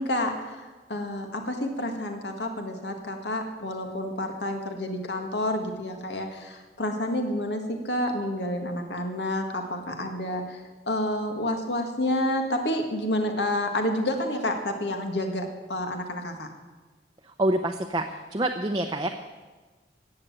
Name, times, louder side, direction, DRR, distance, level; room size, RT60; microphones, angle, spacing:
voice 1, 0.0-16.5, left 1 dB, 75° left, 4 dB, 1.9 m, -29 dB
voice 2, 17.4-19.1, right 1 dB, 25° right, 3 dB, 0.7 m, -26 dB
15.0 x 8.1 x 8.9 m, 1.3 s
head